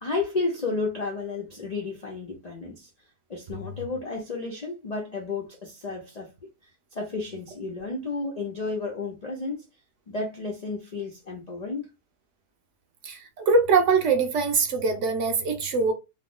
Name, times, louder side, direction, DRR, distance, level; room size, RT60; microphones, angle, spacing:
voice 1, 0.0-2.9 3.3-6.3 6.9-9.7 10.1-11.9, left 3 dB, 80° left, 0.3 m, -32 dB
voice 2, 13.0-15.9, right 4 dB, 65° right, 0.7 m, -23 dB
2.9 x 2.0 x 3.6 m
omnidirectional pair, 1.7 m